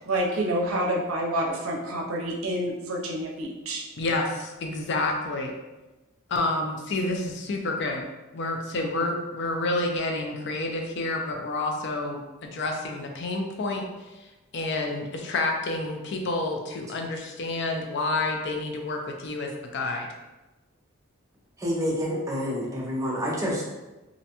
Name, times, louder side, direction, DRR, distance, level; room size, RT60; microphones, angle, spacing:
voice 1, 0.1-3.8, right 1 dB, 75° right, -2 dB, 0.6 m, -28 dB
voice 2, 4.0-5.5 6.3-8.0 8.3-13.9 14.2-20.1, left 2 dB, 55° left, 2 dB, 0.4 m, -29 dB
voice 3, 21.6-23.6, equal, 15° right, -4 dB, 0.4 m, -28 dB
2.5 x 2.1 x 2.7 m, 1.1 s
head